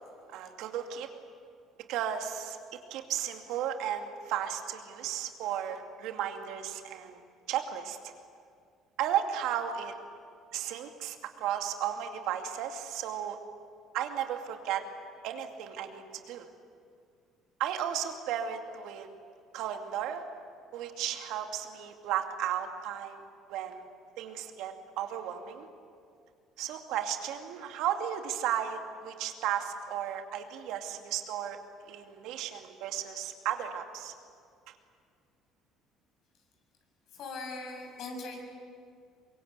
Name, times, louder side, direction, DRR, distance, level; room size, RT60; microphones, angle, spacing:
voice 1, 0.3-1.1 1.9-7.2 7.5-8.1 9.0-9.9 10.5-13.4 13.9-14.8 15.2-16.5 17.6-19.1 19.5-20.2 20.7-23.2 23.5-23.8 24.2-25.7 26.6-31.6 31.9-34.1, right 10 dB, 75° right, 5 dB, 2.4 m, -34 dB
voice 2, 37.1-38.4, left 3 dB, 65° left, 2 dB, 6.7 m, -40 dB
24.0 x 23.0 x 8.3 m, 2.2 s
supercardioid pair, 80°, 0 cm